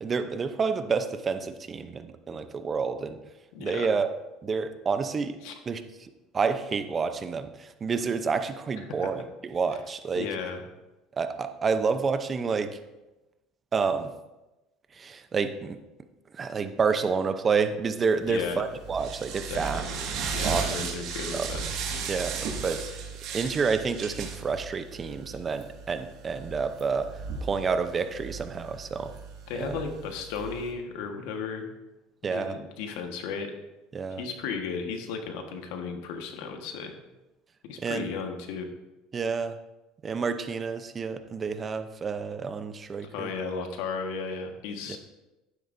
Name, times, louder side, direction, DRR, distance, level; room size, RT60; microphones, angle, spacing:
voice 1, 0.0-3.2 3.6-4.1 4.4-5.4 5.7-5.8 6.3-10.3 11.2-12.8 13.7-14.1 15.0-15.8 16.3-19.8 20.4-20.9 21.3-21.5 22.1-23.0 23.3-27.1 27.4-29.1 29.5-29.7 32.2-32.6 33.9-34.2 37.8-38.1 39.1-39.6 40.0-43.3 44.9-45.0, right 5 dB, 25° right, 9 dB, 0.7 m, -29 dB
voice 2, 3.5-3.9 5.4-5.5 9.0-9.1 10.1-10.6 18.3-18.6 19.5-22.1 29.5-31.7 32.3-33.5 34.2-36.9 37.6-38.7 43.0-45.0, left 5 dB, 80° left, 5 dB, 1.4 m, -35 dB
sound 1, 18.3-30.7, right 5 dB, 60° right, 1.9 m, -36 dB
11.0 x 9.7 x 2.7 m, 1.0 s
cardioid pair, 125°, 0 cm